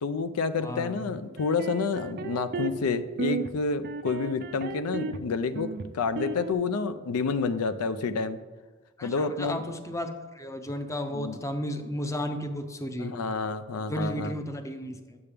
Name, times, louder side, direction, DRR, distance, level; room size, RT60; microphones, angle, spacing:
voice 1, 0.0-8.4 9.0-9.6 11.1-11.4 13.0-14.3, left 4 dB, 85° left, 12 dB, 0.4 m, -29 dB
voice 2, 0.6-1.0 9.0-13.1 13.9-15.2, equal, 15° left, 7 dB, 0.5 m, -34 dB
sound 1, 1.4-2.9 3.2-3.5 3.8-5.2 5.5-6.5, right 4 dB, 50° right, 0.4 m, -34 dB
8.7 x 6.7 x 3.4 m, 1.3 s
head